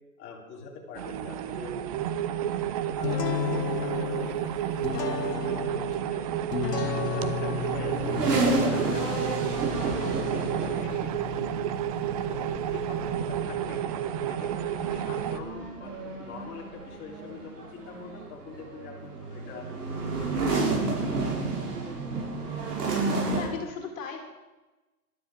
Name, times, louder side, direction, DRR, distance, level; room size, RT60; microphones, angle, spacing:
voice 1, 0.2-1.7 2.9-3.2 3.8-5.3 5.7-6.4 6.8-11.2 12.3-19.7 20.1-21.2, left 4 dB, 25° left, -2 dB, 3.5 m, -44 dB
sound 1, 0.9-15.4, right 10 dB, 25° right, 0.6 m, -31 dB
sound 2, 3.0-14.5, left 8 dB, 85° left, 1.7 m, -35 dB
sound 3, 7.4-23.5, right 3 dB, 85° right, 6.2 m, -31 dB
voice 2, 23.3-24.2, left 6 dB, 55° left, 2 dB, 3.1 m, -36 dB
12.5 x 12.0 x 7.6 m, 1.1 s
hypercardioid pair, 145°, 47 cm